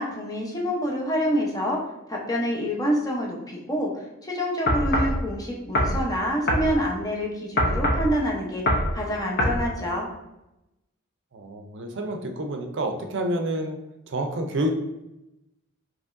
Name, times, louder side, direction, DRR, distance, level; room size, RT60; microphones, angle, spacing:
voice 1, 0.0-1.8 2.1-10.1, equal, 20° left, -2 dB, 0.7 m, -27 dB
sound 1, 4.7-5.2 5.7-6.0 6.5-6.7 7.6-8.1 8.7-8.9 9.4-9.6, left 1 dB, 55° left, 0.7 m, -22 dB
voice 2, 11.3-13.8 14.1-14.7, right 1 dB, 60° right, 4 dB, 0.6 m, -28 dB
5.1 x 2.9 x 2.5 m, 0.91 s
head